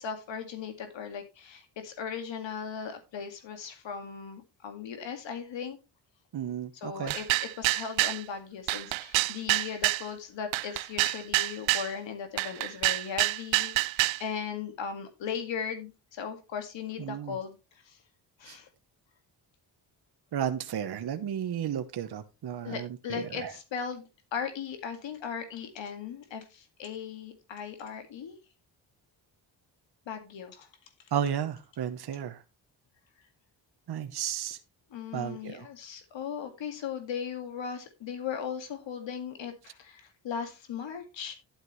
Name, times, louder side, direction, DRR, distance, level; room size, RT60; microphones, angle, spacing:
voice 1, 0.0-5.8 6.7-17.6 17.8-18.0 18.4-18.7 22.6-28.4 30.1-30.7 34.9-41.3, left 7 dB, 75° left, 7 dB, 2.1 m, -38 dB
voice 2, 6.3-7.1 17.0-17.3 18.5-18.6 20.3-23.5 31.1-32.4 33.9-34.6 35.1-35.6, right 9 dB, 55° right, 8 dB, 1.1 m, -33 dB
sound 1, 7.1-8.2 8.7-10.0 10.5-11.9 12.4-14.2, right 18 dB, 80° right, 0.5 m, -27 dB
11.5 x 9.1 x 3.2 m, 0.26 s
cardioid pair, 70°, 45 cm